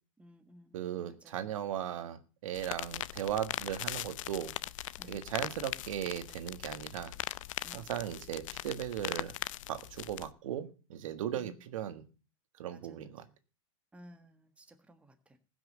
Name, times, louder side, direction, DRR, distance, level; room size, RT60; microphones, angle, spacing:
voice 1, 0.2-1.6 5.0-5.2 7.6-7.9 11.3-11.6 12.7-13.1 13.9-15.4, equal, 5° right, 7 dB, 1.4 m, -57 dB
voice 2, 0.7-4.5 5.1-7.1 7.7-9.3 9.7-12.0 12.6-13.2, right 10 dB, 75° right, 11 dB, 1.6 m, -37 dB
sound 1, 2.5-10.3, left 15 dB, 70° left, 0.6 m, -40 dB
15.5 x 6.2 x 8.2 m, 0.36 s
hypercardioid pair, 130°, 17 cm